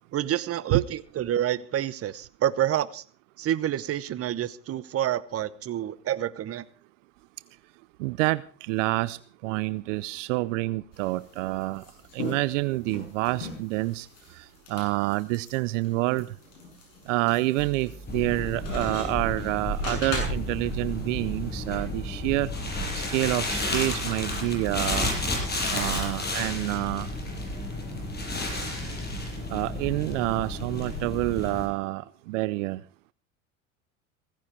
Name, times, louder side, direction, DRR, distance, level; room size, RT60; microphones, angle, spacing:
voice 1, 0.1-3.0 3.4-6.7, right 11 dB, 35° right, 1.0 m, -28 dB
voice 2, 8.0-11.8 12.1-14.1 14.3-14.4 14.7-16.3 17.1-22.5 22.9-25.1 25.7-27.1 29.5-32.8, right 20 dB, 70° right, 0.7 m, -28 dB
sound 1, 10.9-20.6, left 3 dB, 75° left, 7.3 m, -40 dB
sound 2, 17.6-29.9, right 2 dB, 5° left, 3.0 m, -45 dB
sound 3, 18.1-31.7, left 1 dB, 25° left, 6.9 m, -32 dB
16.5 x 15.0 x 4.4 m
hypercardioid pair, 85°, 38 cm